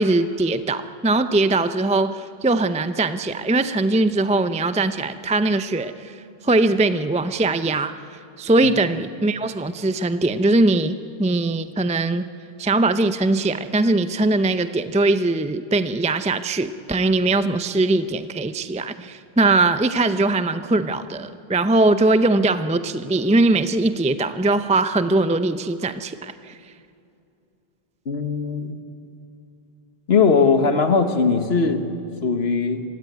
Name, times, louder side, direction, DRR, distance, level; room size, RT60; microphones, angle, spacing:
voice 1, 0.0-6.2 6.4-7.9 8.4-12.3 12.6-26.5, right 2 dB, 10° right, 11 dB, 0.5 m, -21 dB
voice 2, 28.1-28.8 30.1-31.8 32.2-32.8, left 5 dB, 80° left, 8 dB, 1.6 m, -19 dB
26.5 x 16.5 x 9.5 m, 2.6 s
omnidirectional pair, 1.0 m